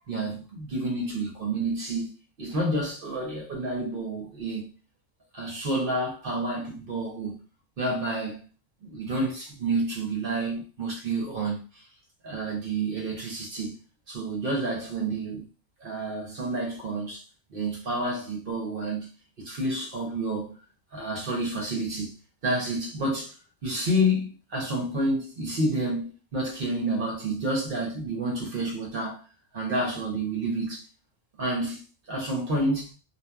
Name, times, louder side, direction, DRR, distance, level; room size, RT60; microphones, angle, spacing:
voice 1, 0.1-2.1 2.4-4.7 5.3-7.4 7.8-8.4 8.8-11.6 12.2-13.7 14.1-15.5 15.8-17.2 17.5-19.1 19.4-20.5 20.9-22.1 22.4-23.3 23.6-29.2 29.5-30.8 31.4-31.8 32.1-32.9, right 1 dB, 55° right, 1.1 m, -29 dB
2.8 x 2.3 x 2.3 m
omnidirectional pair, 1.2 m